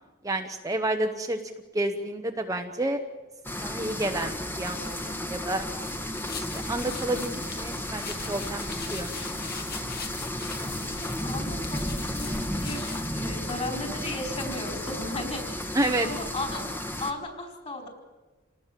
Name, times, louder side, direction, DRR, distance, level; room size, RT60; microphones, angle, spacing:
voice 1, 0.2-1.4 1.7-3.0 3.6-5.7 6.4-9.1 15.7-16.1, right 1 dB, 15° right, 4 dB, 1.0 m, -30 dB
sound 1, 3.4-17.1, left 1 dB, 10° left, 1.5 m, -33 dB
sound 2, 4.6-13.1, left 5 dB, 45° left, 2.1 m, -41 dB
voice 2, 10.6-10.9 11.2-15.4 16.0-16.7 17.0-17.9, left 2 dB, 30° left, 3 dB, 4.7 m, -35 dB
27.5 x 19.0 x 7.5 m, 1.3 s
head